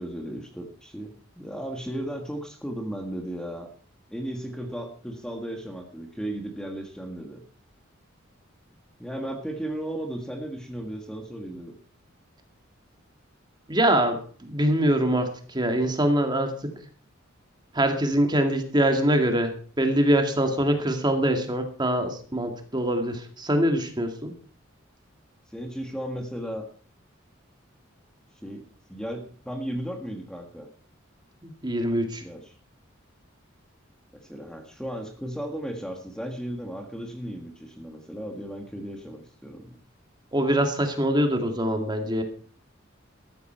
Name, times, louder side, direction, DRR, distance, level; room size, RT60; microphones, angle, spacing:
voice 1, 0.0-3.7 4.1-7.4 9.0-11.7 25.5-26.7 28.4-28.6 28.9-30.7 32.2-32.5 34.1-39.8, right 1 dB, 5° left, 4 dB, 1.7 m, -35 dB
voice 2, 13.7-16.8 17.7-24.3 31.4-32.2 40.3-42.2, right 1 dB, 20° right, 5 dB, 2.0 m, -24 dB
13.5 x 13.5 x 4.5 m, 0.43 s
head